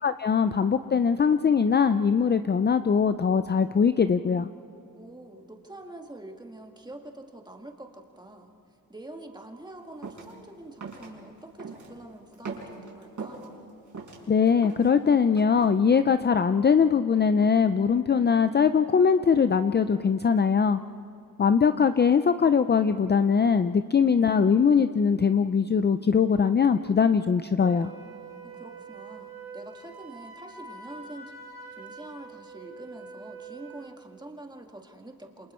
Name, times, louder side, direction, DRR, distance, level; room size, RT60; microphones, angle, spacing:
voice 1, 0.0-4.5 14.3-20.8 21.4-27.9, left 6 dB, 30° left, 10 dB, 0.5 m, -21 dB
voice 2, 5.0-8.5 8.9-13.6 28.4-31.3 31.8-35.5, right 1 dB, 10° right, 2 dB, 2.0 m, -45 dB
sound 1, 10.0-10.3 10.8-11.1 11.6-12.0 12.3-13.5 13.9-14.9 15.4-15.7, right 4 dB, 55° right, 5.7 m, -39 dB
Wind instrument woodwind instrument, 27.6-33.9, right 4 dB, 40° right, 3.9 m, -44 dB
28.5 x 27.0 x 4.4 m, 2.6 s
wide cardioid pair, 125°, 36 cm